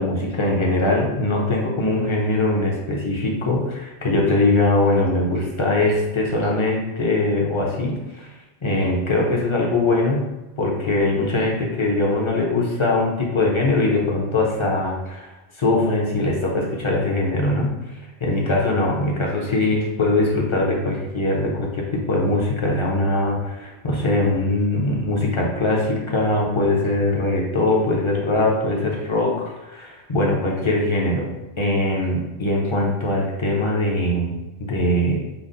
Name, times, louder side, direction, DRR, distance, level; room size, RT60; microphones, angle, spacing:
voice 1, 0.0-8.3 8.6-10.2 10.6-15.3 15.6-17.7 18.2-31.3 31.6-35.2, left 2 dB, 40° left, -2 dB, 0.4 m, -21 dB
5.5 x 2.0 x 2.5 m, 1.0 s
omnidirectional pair, 1.2 m